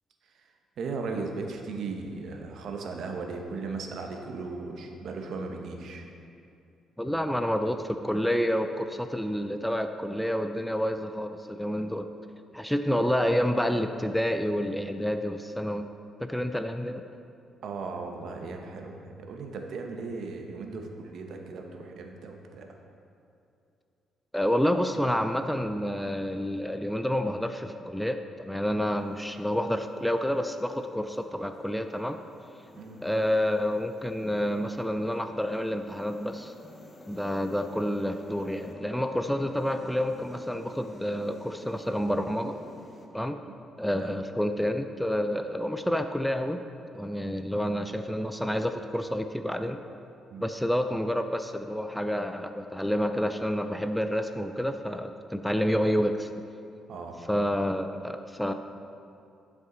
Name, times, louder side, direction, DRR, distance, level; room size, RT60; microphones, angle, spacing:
voice 1, 0.3-6.1 7.1-7.2 17.6-22.7 32.7-33.0 43.5-43.6 44.0-44.2 50.3-50.4 56.9-57.2, right 4 dB, 70° right, 2 dB, 1.0 m, -37 dB
voice 2, 7.0-12.1 12.5-15.9 16.2-17.0 24.3-32.2 33.0-36.5 37.1-42.6 43.1-43.4 43.8-46.6 46.9-49.8 50.4-56.3 57.3-58.5, equal, 5° left, 7 dB, 0.4 m, -29 dB
sound 1, 28.9-43.1, left 2 dB, 25° left, 0.9 m, -50 dB
11.0 x 6.1 x 3.9 m, 2.6 s
cardioid pair, 90°, 0 cm